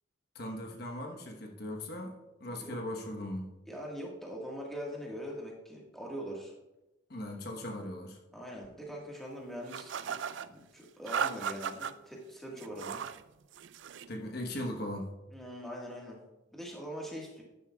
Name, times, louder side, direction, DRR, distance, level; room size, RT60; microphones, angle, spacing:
voice 1, 0.3-3.5 7.1-8.2 14.1-15.1, left 1 dB, 55° left, 2 dB, 1.1 m, -39 dB
voice 2, 3.6-6.5 8.3-10.2 10.5-13.0 15.3-16.2 16.5-17.4, equal, ahead, -3 dB, 1.5 m, -42 dB
sound 1, 9.7-10.5 11.1-11.9 12.6-13.2 13.5-14.1, right 7 dB, 70° right, 0.4 m, -36 dB
11.5 x 9.8 x 2.3 m, 1.0 s
head